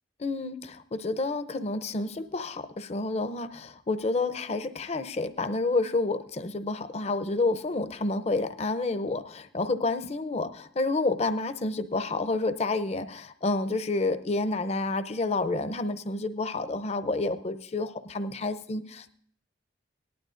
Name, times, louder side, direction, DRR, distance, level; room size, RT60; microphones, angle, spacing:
voice 1, 0.2-19.1, left 3 dB, 35° left, 10 dB, 0.6 m, -29 dB
18.5 x 11.5 x 2.5 m, 0.62 s
head